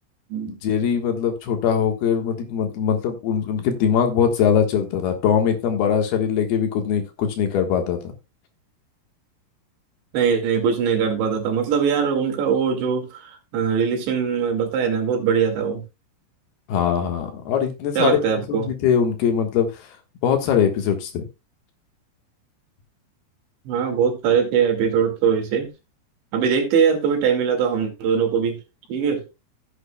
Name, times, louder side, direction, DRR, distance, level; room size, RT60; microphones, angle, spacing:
voice 1, 0.5-8.0 16.7-18.2 18.5-19.7 20.2-21.2, left 8 dB, 70° left, 3.2 m, -21 dB
voice 2, 10.1-15.8 18.0-18.7 23.7-25.7 26.3-28.6 28.9-29.2, right 6 dB, 90° right, 4.5 m, -21 dB
15.0 x 7.9 x 2.3 m
omnidirectional pair, 5.0 m